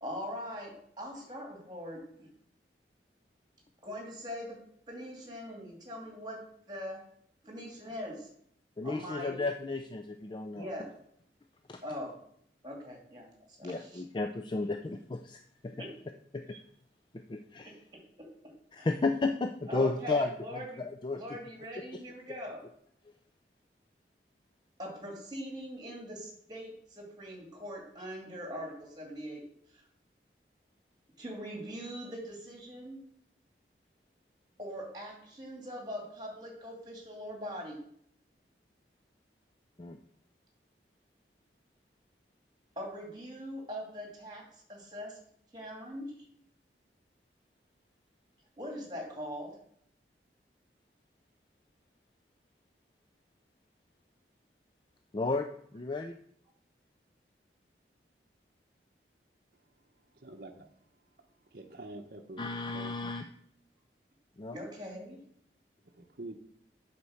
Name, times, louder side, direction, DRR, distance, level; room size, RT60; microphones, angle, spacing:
voice 1, 0.0-2.3 3.8-4.6 4.9-7.0 7.4-8.3 8.8-9.4 10.5-10.9 11.8-12.2 12.6-13.3 13.6-14.0 15.8-15.9 16.5-16.6 18.2-18.3 18.8-18.9 19.7-20.9 21.1-22.6 24.8-29.4 29.7-29.8 31.2-33.0 34.6-37.8 42.8-44.4 44.7-45.2 45.5-46.1 48.6-49.5 64.5-65.2, equal, 25° right, 1 dB, 2.4 m, -41 dB
voice 2, 8.8-10.7 11.7-11.8 13.6-15.8 16.3-16.4 17.3-17.7 18.7-20.6 21.0-21.4 39.8-40.0 55.1-55.5 55.7-56.1 62.4-63.2 64.4-64.6, left 3 dB, 25° left, 6 dB, 0.4 m, -33 dB
voice 3, 60.1-60.7 61.5-62.9 65.8-66.3, right 2 dB, 55° right, 2 dB, 0.8 m, -46 dB
8.4 x 4.4 x 6.3 m, 0.66 s
head